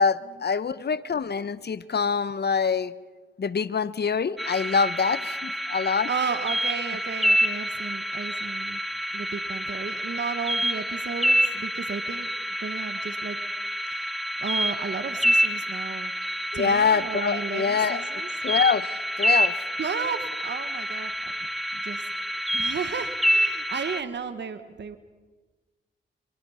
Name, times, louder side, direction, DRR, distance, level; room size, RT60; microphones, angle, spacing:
voice 1, 0.0-2.9 3.4-6.1 16.5-18.0 18.4-19.6, left 6 dB, 50° left, 16 dB, 1.1 m, -25 dB
sound 1, 4.4-24.0, equal, ahead, 1.2 m, -28 dB
voice 2, 6.1-8.8 9.1-12.3 12.6-13.4 13.9-14.2 14.4-16.1 16.5-18.3 19.8-21.1 21.7-22.1 22.5-25.0, right 6 dB, 55° right, 10 dB, 1.6 m, -33 dB
25.5 x 23.0 x 5.8 m, 1.3 s
supercardioid pair, 55°, 21 cm